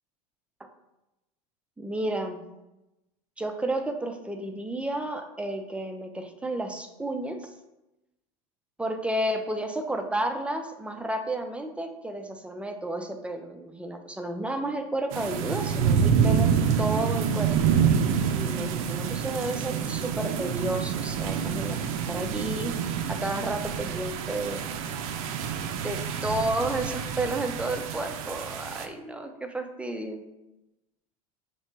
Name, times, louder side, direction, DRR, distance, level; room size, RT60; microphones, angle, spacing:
voice 1, 1.8-2.4 3.4-7.5 8.8-17.5 18.3-21.8 22.1-22.7 23.1-24.7 25.8-30.2, right 1 dB, 5° right, 5 dB, 0.4 m, -32 dB
sound 1, 15.1-28.9, right 7 dB, 65° right, 0.5 m, -27 dB
3.2 x 2.9 x 4.3 m, 0.96 s
hypercardioid pair, 90°, 20 cm